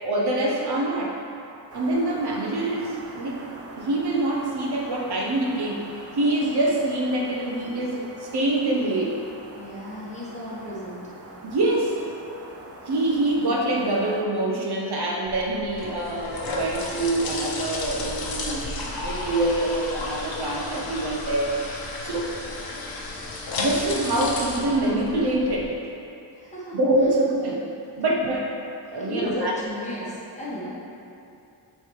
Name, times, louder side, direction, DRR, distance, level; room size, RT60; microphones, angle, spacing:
voice 1, 0.0-1.2 1.7-3.4 3.8-5.9 6.1-9.2 11.4-12.0 12.9-21.5 22.0-22.3 23.6-25.7 26.7-27.6 28.0-28.5 28.9-29.5, right 1 dB, 60° right, -2 dB, 0.9 m, -25 dB
sound 1, 1.7-14.2, right 2 dB, 35° right, 0.6 m, -43 dB
voice 2, 9.5-11.0 26.3-26.8 29.0-30.7, equal, 15° left, -8 dB, 1.3 m, -34 dB
sound 2, 15.3-25.6, left 2 dB, 55° left, 0.9 m, -33 dB
8.0 x 3.4 x 4.6 m, 2.6 s
wide cardioid pair, 180°, 44 cm